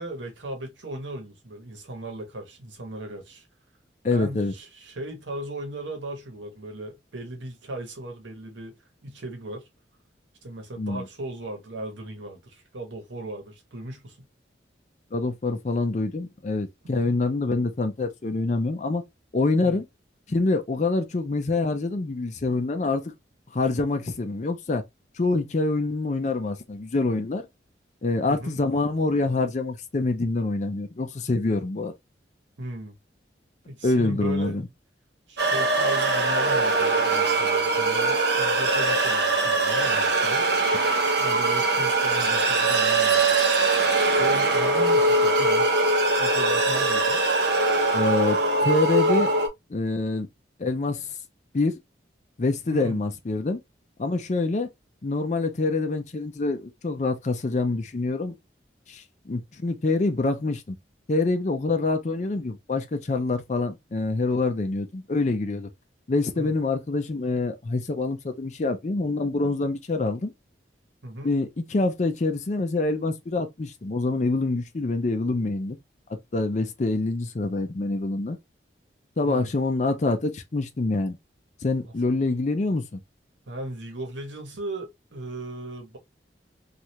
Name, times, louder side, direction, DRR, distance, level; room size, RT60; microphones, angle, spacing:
voice 1, 0.0-3.5 4.1-8.7 9.0-9.7 10.4-14.2 16.8-17.2 19.6-19.8 28.3-28.6 32.6-33.0 33.7-34.6 35.3-40.5 41.2-43.5 43.9-45.9 46.2-47.2 52.7-53.0 66.3-66.5 71.0-71.3 79.2-79.5 81.8-81.9 83.5-86.0, right 1 dB, 85° right, 1.0 m, -37 dB
voice 2, 4.0-4.5 10.8-11.1 15.1-19.0 19.3-19.8 20.3-23.1 23.5-24.8 25.2-27.4 28.0-31.9 33.8-34.6 47.9-49.3 49.7-50.3 50.6-51.1 51.5-51.8 52.4-53.6 54.0-54.7 55.0-58.3 58.9-60.8 61.1-65.7 66.1-70.3 71.2-75.8 76.3-78.4 79.2-81.2 81.6-83.0, left 3 dB, 40° left, 0.4 m, -26 dB
sound 1, 35.4-49.5, right 2 dB, 65° right, 0.7 m, -22 dB
3.2 x 2.4 x 2.7 m
head